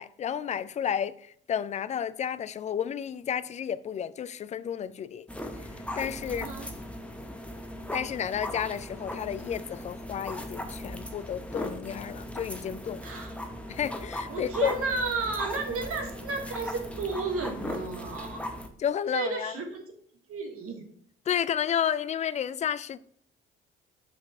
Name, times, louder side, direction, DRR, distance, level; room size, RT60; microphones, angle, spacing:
voice 1, 0.0-5.3 5.6-5.7 6.0-6.5 7.9-13.0 13.7-14.7 18.8-19.5 21.3-23.0, left 9 dB, 25° left, 0.3 m, -31 dB
sound 1, 5.3-18.7, left 1 dB, 5° left, 0.9 m, -38 dB
voice 2, 6.2-6.7 13.0-13.4 14.3-18.4 19.1-19.8 20.3-20.8, right 3 dB, 45° right, 1.5 m, -33 dB
5.8 x 5.2 x 3.6 m
figure-of-eight pair, 50°, 30 cm